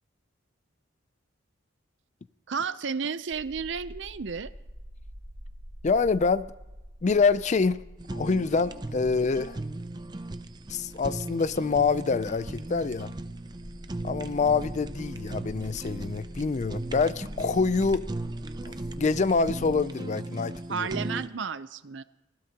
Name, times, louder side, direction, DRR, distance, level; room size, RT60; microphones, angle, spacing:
voice 1, 2.5-4.5 20.7-22.0, right 5 dB, 70° right, 0.6 m, -32 dB
sound 1, 3.3-19.8, equal, 85° right, 1.8 m, -46 dB
voice 2, 5.8-6.5 7.0-7.8 8.1-9.6 10.7-13.1 14.0-18.1 18.7-20.9, left 4 dB, 40° left, 0.4 m, -26 dB
Fire, 8.0-21.3, right 2 dB, 20° right, 0.5 m, -37 dB
24.5 x 16.5 x 2.9 m
head